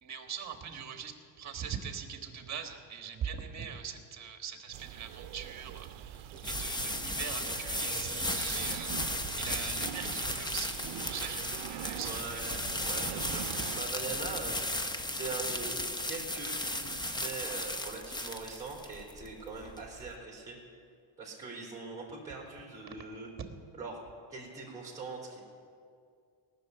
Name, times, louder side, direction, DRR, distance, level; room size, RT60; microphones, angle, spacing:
voice 1, 0.0-9.1 9.4-10.7 11.0-12.4, right 7 dB, 35° right, 5 dB, 1.6 m, -42 dB
sound 1, 4.7-13.8, right 13 dB, 65° right, 0.6 m, -43 dB
sound 2, 5.2-20.1, left 1 dB, 10° left, 0.6 m, -36 dB
voice 2, 11.9-20.6 21.2-23.3 23.7-24.0 24.3-25.4, right 4 dB, 5° right, -5 dB, 3.7 m, -42 dB
18.5 x 6.7 x 9.4 m, 2.3 s
cardioid pair, 140°, 48 cm